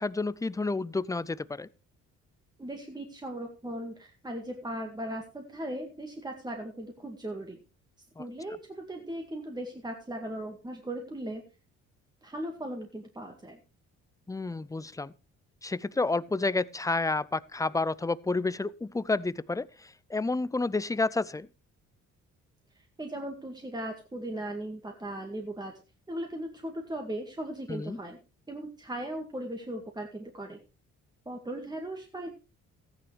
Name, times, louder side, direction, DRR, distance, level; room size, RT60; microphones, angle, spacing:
voice 1, 0.0-1.7 8.2-8.3 14.3-15.1 15.6-21.5 27.7-28.0, left 3 dB, 10° left, 0.5 m, -30 dB
voice 2, 2.6-7.6 8.2-11.4 12.2-13.6 23.0-25.7 26.1-28.2 28.5-30.6 31.3-32.3, right 1 dB, 15° right, 2.1 m, -38 dB
14.5 x 9.8 x 3.3 m
cardioid pair, 90°, 30 cm